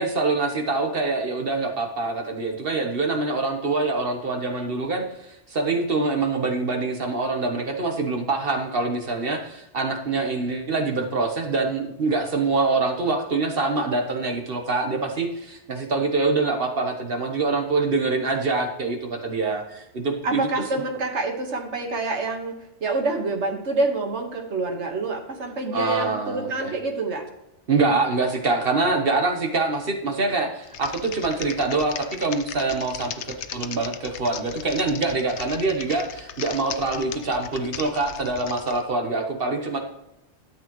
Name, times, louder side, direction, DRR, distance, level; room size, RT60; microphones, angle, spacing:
voice 1, 0.0-20.8 25.7-26.7 27.7-39.8, right 3 dB, 55° right, 4 dB, 1.3 m, -25 dB
voice 2, 20.2-27.3, right 3 dB, 85° right, 3 dB, 1.7 m, -27 dB
Typing, 30.6-38.8, left 8 dB, 80° left, 1.0 m, -37 dB
13.0 x 7.3 x 3.0 m, 0.86 s
omnidirectional pair, 1.2 m